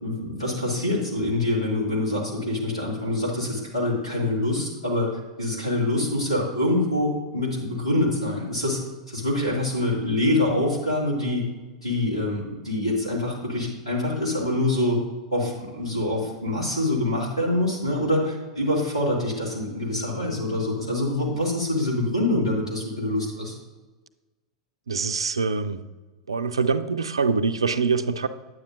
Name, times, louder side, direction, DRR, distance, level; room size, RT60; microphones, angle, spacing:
voice 1, 0.0-8.8 9.1-11.4 11.8-15.0 15.3-23.5, left 1 dB, 85° left, -4 dB, 2.2 m, -25 dB
voice 2, 24.9-25.8 26.3-28.3, right 4 dB, 75° right, 12 dB, 0.4 m, -24 dB
9.3 x 8.5 x 2.5 m, 1.2 s
figure-of-eight pair, 90°, 3 cm